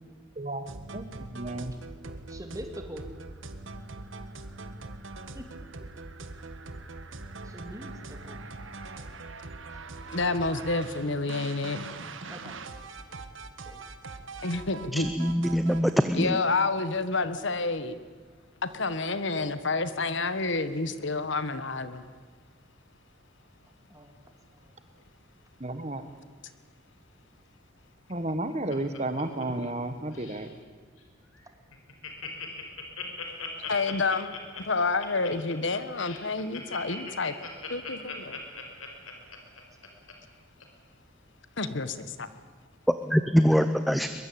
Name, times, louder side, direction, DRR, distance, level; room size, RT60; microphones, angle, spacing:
sound 1, 0.7-15.9, right 3 dB, 70° right, 1.6 m, -42 dB
voice 1, 1.3-1.7 25.6-26.0 28.1-30.5, right 2 dB, 30° right, 10 dB, 1.4 m, -32 dB
voice 2, 2.3-3.1 5.3-5.5 7.4-8.4 9.7-9.8 12.3-12.6 13.7-13.8 23.9-24.1 24.6-24.7 39.9-40.0, equal, 15° right, 5 dB, 2.5 m, -43 dB
voice 3, 10.1-11.9 14.4-15.1 16.1-18.0 18.6-22.0 33.7-34.3 34.6-37.3 37.7-38.4 41.6-42.3, left 3 dB, 65° left, 12 dB, 1.3 m, -29 dB
voice 4, 14.9-16.4 43.0-44.1, equal, ahead, 9 dB, 0.7 m, -23 dB
Laughter, 28.1-29.9 30.1-30.5 31.0-31.1 31.3-31.4 31.7-40.1 40.6-40.7, left 5 dB, 85° left, 4.6 m, -40 dB
22.5 x 22.0 x 8.7 m, 1.5 s
head